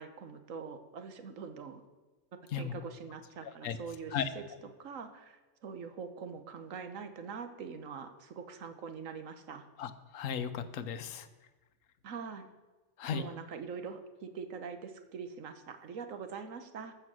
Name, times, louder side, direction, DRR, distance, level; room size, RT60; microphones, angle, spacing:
voice 1, 0.0-1.8 2.5-9.7 12.0-12.5 13.1-16.9, right 5 dB, 80° right, 8 dB, 1.4 m, -44 dB
voice 2, 9.8-11.3 13.0-13.2, left 7 dB, 80° left, 12 dB, 1.1 m, -35 dB
14.0 x 6.4 x 6.2 m, 1.2 s
omnidirectional pair, 1.4 m